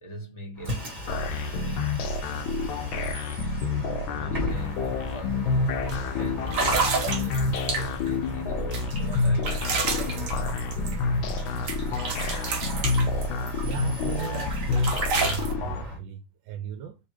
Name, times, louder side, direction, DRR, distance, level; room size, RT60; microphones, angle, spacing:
voice 1, 0.0-1.9 4.2-5.7 6.2-10.2, equal, 25° left, 0.6 m, -43 dB
Bus, 0.6-16.0, left 1 dB, 20° right, 1.4 m, -37 dB
sound 1, 1.1-15.8, left 3 dB, 80° left, 1.4 m, -28 dB
sound 2, 4.5-4.6 5.0-5.3 5.9-6.0 6.5-8.1 8.7-11.4 11.7-13.8 14.2-15.5, right 4 dB, 55° right, 1.0 m, -30 dB
voice 2, 13.6-17.0, right 8 dB, 80° right, 1.3 m, -37 dB
3.5 x 2.8 x 4.6 m
omnidirectional pair, 2.1 m